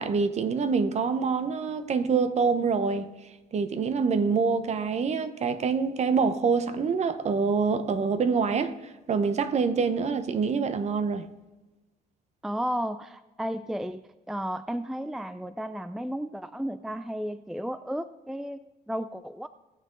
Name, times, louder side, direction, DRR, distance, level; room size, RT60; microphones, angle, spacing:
voice 1, 0.0-3.1 3.5-8.8 9.1-11.3, right 5 dB, 40° right, 0.9 m, -26 dB
voice 2, 12.4-18.6 18.9-19.5, equal, ahead, 0.3 m, -33 dB
18.5 x 6.7 x 3.9 m
cardioid pair, 110°, 17 cm